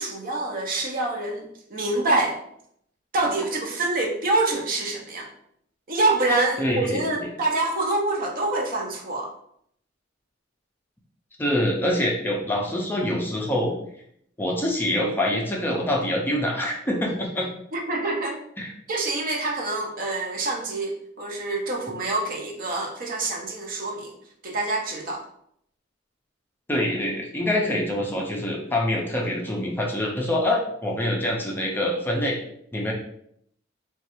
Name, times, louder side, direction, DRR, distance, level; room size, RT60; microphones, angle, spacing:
voice 1, 0.0-2.4 3.1-5.3 5.9-9.3 17.7-18.4 18.9-24.2 24.4-25.2, right 2 dB, 50° right, 1 dB, 0.6 m, -26 dB
voice 2, 6.6-7.0 11.4-13.7 14.4-17.5 18.6-18.7 26.7-32.4 32.7-32.9, left 1 dB, 10° left, -2 dB, 0.4 m, -25 dB
3.1 x 2.3 x 2.9 m, 0.70 s
head